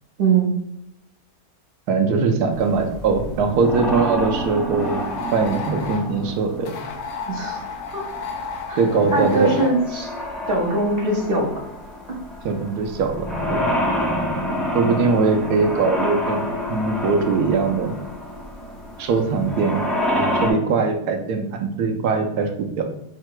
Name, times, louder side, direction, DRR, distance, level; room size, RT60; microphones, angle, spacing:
voice 1, 0.2-0.5 7.3-8.0 8.7-8.8 9.1-10.1 10.5-11.6, right 2 dB, 40° right, -2 dB, 1.0 m, -22 dB
voice 2, 1.9-5.0 5.3-6.7 8.8-9.6 12.4-13.7 14.7-17.9 19.0-19.8 20.1-22.8, right 4 dB, 90° right, 3 dB, 1.2 m, -21 dB
sound 1, 2.5-20.5, equal, ahead, 0.7 m, -28 dB
sound 2, 4.8-6.1 6.6-9.8, left 5 dB, 80° left, 1.2 m, -32 dB
4.8 x 2.2 x 4.5 m, 0.83 s
omnidirectional pair, 1.6 m